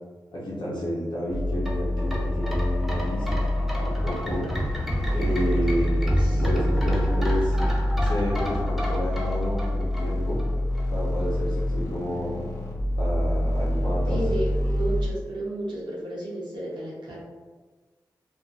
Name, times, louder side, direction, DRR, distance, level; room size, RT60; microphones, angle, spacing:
voice 1, 0.3-3.3 3.8-4.5 5.1-6.0 6.3-7.6 8.0-10.4 10.9-12.4 13.0-14.2, equal, 80° left, -7 dB, 0.7 m, -30 dB
sound 1, 1.3-15.1, left 1 dB, 40° left, 0.7 m, -26 dB
sound 2, 1.5-10.5 10.8-10.9, equal, 5° right, 0.5 m, -31 dB
voice 2, 6.0-7.0 14.1-17.2, right 1 dB, 80° right, -7 dB, 0.8 m, -33 dB
2.5 x 2.3 x 2.4 m, 1.4 s
cardioid pair, 45°, 8 cm